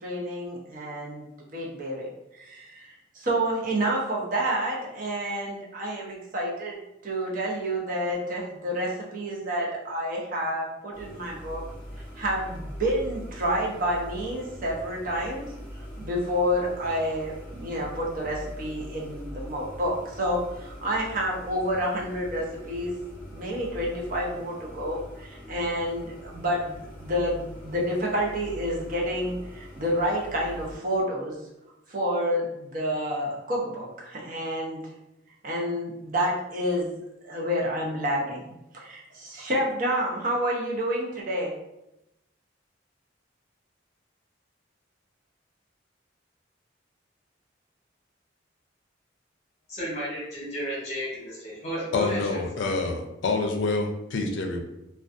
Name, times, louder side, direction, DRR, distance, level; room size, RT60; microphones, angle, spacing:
voice 1, 0.0-6.8 7.0-11.6 12.2-15.5 16.0-23.0 23.3-31.4 31.9-34.8 35.4-36.9 37.2-38.4 38.7-41.5, equal, 45° right, -2 dB, 0.6 m, -29 dB
sound 1, 10.9-30.8, equal, 5° left, 0.6 m, -42 dB
voice 2, 49.7-52.4, equal, 35° left, -6 dB, 0.9 m, -33 dB
voice 3, 51.9-54.6, left 3 dB, 70° left, 3 dB, 0.4 m, -27 dB
2.4 x 2.2 x 2.5 m, 0.89 s
head